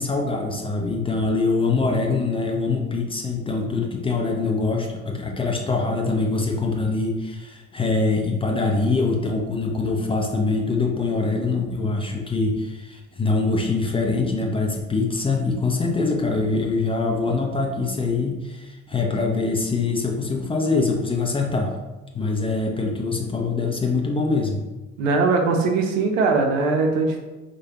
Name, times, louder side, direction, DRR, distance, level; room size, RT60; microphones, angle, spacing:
voice 1, 0.0-21.7 22.1-24.6, left 3 dB, 15° left, 1 dB, 0.4 m, -24 dB
voice 2, 25.0-27.2, right 3 dB, 70° right, 4 dB, 0.6 m, -20 dB
4.7 x 2.2 x 2.9 m, 1.1 s
figure-of-eight pair, 55°, 40 cm